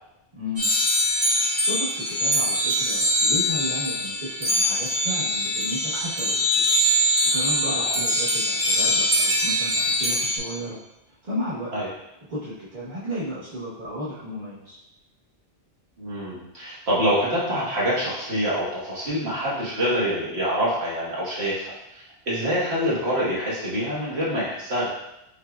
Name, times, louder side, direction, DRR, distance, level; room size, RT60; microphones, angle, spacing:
voice 1, 0.4-0.7 1.3-6.6 7.3-10.8 11.2-11.7 12.3-14.8, equal, 45° right, -11 dB, 1.2 m, -33 dB
sound 1, 0.6-10.4, equal, 30° right, 0.9 m, -23 dB
voice 2, 7.7-8.0 11.7-11.9 16.0-24.9, equal, 65° right, -7 dB, 1.7 m, -26 dB
5.7 x 3.4 x 2.3 m, 0.87 s
omnidirectional pair, 1.1 m